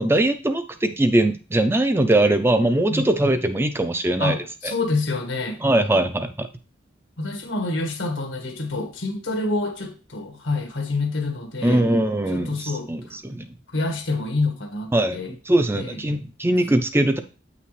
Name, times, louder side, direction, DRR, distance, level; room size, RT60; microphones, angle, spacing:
voice 1, 0.0-4.4 4.6-4.7 5.6-6.5 11.6-13.5 14.9-17.2, right 1 dB, 10° right, 9 dB, 0.4 m, -21 dB
voice 2, 4.2-5.6 7.2-11.8 12.3-13.2 13.7-15.3 15.7-16.0, left 3 dB, 90° left, 5 dB, 1.6 m, -27 dB
8.4 x 5.8 x 3.2 m, 0.34 s
head